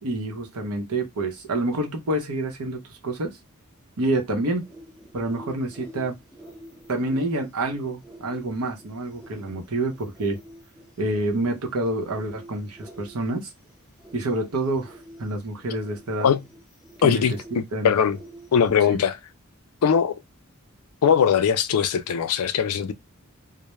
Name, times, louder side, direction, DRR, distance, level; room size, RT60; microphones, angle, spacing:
voice 1, 0.0-3.3 4.0-4.6 5.1-6.1 6.9-10.4 11.0-13.4 14.1-16.3 17.0-17.2 17.5-17.9 18.9-19.0, right 2 dB, 85° right, 0.7 m, -27 dB
sound 1, 4.6-18.8, right 1 dB, ahead, 1.0 m, -48 dB
voice 2, 17.0-18.2 18.5-19.2 19.8-20.2 21.0-22.9, left 7 dB, 85° left, 0.4 m, -21 dB
2.2 x 2.0 x 3.0 m
head